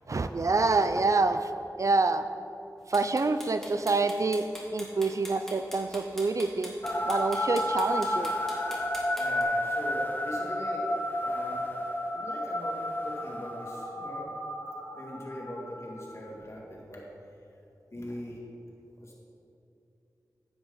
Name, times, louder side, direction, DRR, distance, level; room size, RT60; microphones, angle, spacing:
voice 1, 0.1-1.5 1.8-2.3 2.9-4.5 4.7-6.7 7.0-8.3, right 3 dB, 50° right, 10 dB, 0.4 m, -26 dB
sound 1, 2.9-9.4, equal, 5° left, 2.3 m, -42 dB
sound 2, 6.8-16.3, left 1 dB, 30° left, 0.9 m, -32 dB
voice 2, 9.2-10.9 11.2-11.7 12.1-14.3 14.9-17.0 17.9-18.4 19.0-19.2, equal, 45° left, -3 dB, 2.4 m, -41 dB
9.8 x 8.7 x 4.0 m, 2.8 s
cardioid pair, 55°, 7 cm